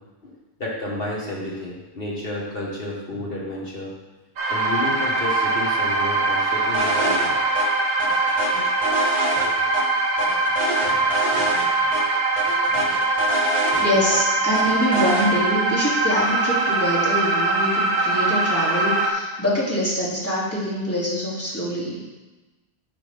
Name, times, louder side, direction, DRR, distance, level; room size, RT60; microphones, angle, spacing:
voice 1, 0.6-3.9 4.5-7.3, left 2 dB, 55° left, -3 dB, 1.5 m, -31 dB
sound 1, 4.4-19.1, right 2 dB, 80° right, 1.3 m, -22 dB
sound 2, 6.7-7.3 7.5-7.7 8.0-9.8 10.2-11.7 11.9-12.0 12.4-14.2 14.5-15.3, right 1 dB, 30° right, 1.2 m, -27 dB
voice 2, 13.8-22.1, equal, 10° left, -8 dB, 2.4 m, -25 dB
9.6 x 6.0 x 3.4 m, 1.2 s
omnidirectional pair, 1.2 m